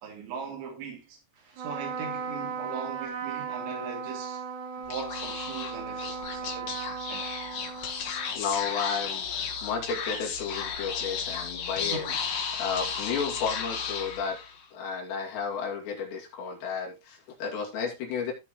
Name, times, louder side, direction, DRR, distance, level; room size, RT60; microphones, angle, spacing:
voice 1, 0.0-1.2 1.6-4.4 4.8-7.3 11.9-12.3, right 5 dB, 80° right, 4.8 m, -40 dB
Trumpet, 1.5-8.4, right 6 dB, 50° right, 3.5 m, -36 dB
Speech / Whispering, 4.8-14.6, left 6 dB, 55° left, 2.9 m, -34 dB
voice 2, 8.3-12.1 12.5-14.4 14.7-18.3, left 6 dB, 75° left, 4.6 m, -32 dB
16.5 x 5.7 x 3.1 m
omnidirectional pair, 5.1 m